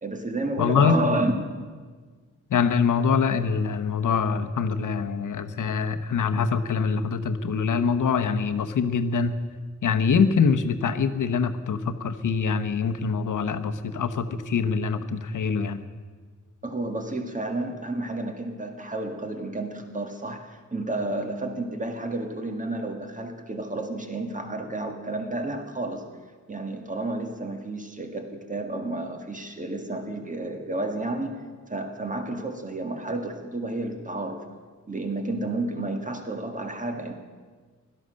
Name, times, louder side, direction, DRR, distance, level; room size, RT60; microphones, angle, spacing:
voice 1, 0.0-1.3 16.6-26.1 26.5-31.4 31.7-34.5 34.9-37.1, right 2 dB, 25° right, 5 dB, 1.9 m, -31 dB
voice 2, 0.6-1.2 2.5-9.4 9.8-15.8, left 5 dB, 80° left, 9 dB, 1.0 m, -24 dB
16.5 x 12.5 x 6.4 m, 1.5 s
wide cardioid pair, 95°, 31 cm